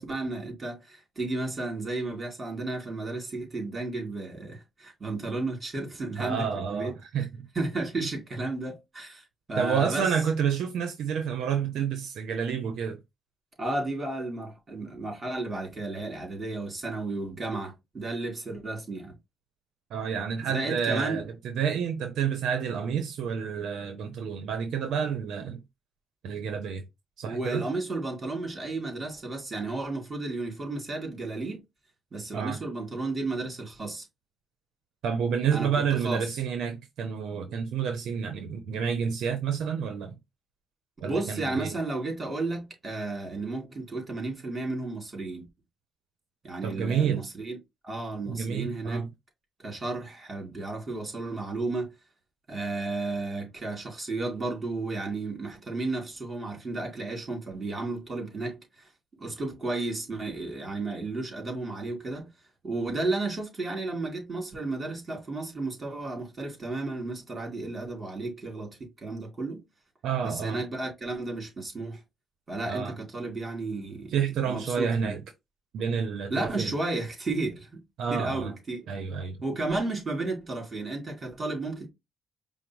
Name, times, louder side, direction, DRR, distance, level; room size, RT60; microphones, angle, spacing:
voice 1, 0.0-7.3 7.5-10.1 13.6-19.2 20.5-21.2 27.2-31.6 32.1-34.1 35.5-35.7 36.0-36.2 41.0-45.5 46.4-47.6 47.8-49.0 49.6-51.9 52.5-58.9 59.2-62.3 62.6-69.6 70.2-72.0 72.5-74.1 74.5-75.2 76.3-77.8 78.1-78.8 79.4-81.9, right 2 dB, 30° right, 3.2 m, -33 dB
voice 2, 6.2-7.5 9.6-13.0 19.9-25.6 26.2-26.8 27.2-27.6 32.3-32.6 35.0-40.1 41.0-41.7 46.6-47.2 48.3-49.1 70.0-70.6 72.7-73.0 74.1-75.2 75.7-76.7 78.0-78.5 78.9-79.4, right 7 dB, 75° right, 0.7 m, -29 dB
5.1 x 2.0 x 4.6 m
cardioid pair, 90°, 0 cm